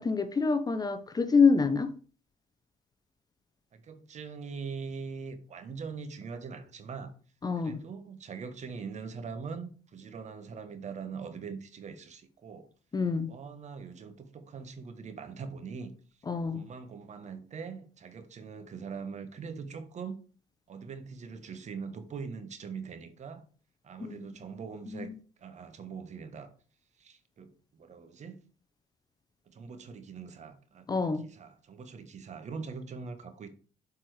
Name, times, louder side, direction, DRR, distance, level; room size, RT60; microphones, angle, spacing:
voice 1, 0.0-1.9 7.4-7.8 12.9-13.3 16.3-16.6 24.0-24.3 24.9-25.2 30.9-31.2, left 5 dB, 25° left, 0.8 m, -27 dB
voice 2, 3.7-7.1 7.6-12.7 13.3-15.9 16.5-20.2 20.7-23.4 23.8-25.1 25.4-26.5 27.0-28.4 29.5-30.9 31.2-33.5, right 5 dB, 45° right, 1.2 m, -42 dB
7.8 x 4.3 x 4.8 m
cardioid pair, 110°, 17 cm